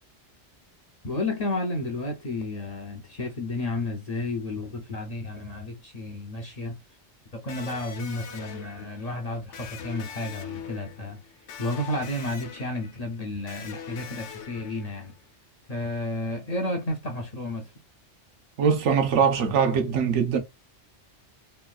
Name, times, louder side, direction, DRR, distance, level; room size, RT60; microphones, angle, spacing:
voice 1, 1.0-6.8 7.3-11.2 11.6-15.2 15.7-17.7, left 2 dB, 50° left, 0.4 m, -32 dB
Electric guitar, 7.5-15.2, left 7 dB, 90° left, 1.0 m, -42 dB
voice 2, 18.6-20.4, right 6 dB, 90° right, 1.0 m, -22 dB
3.1 x 2.3 x 2.3 m
omnidirectional pair, 1.2 m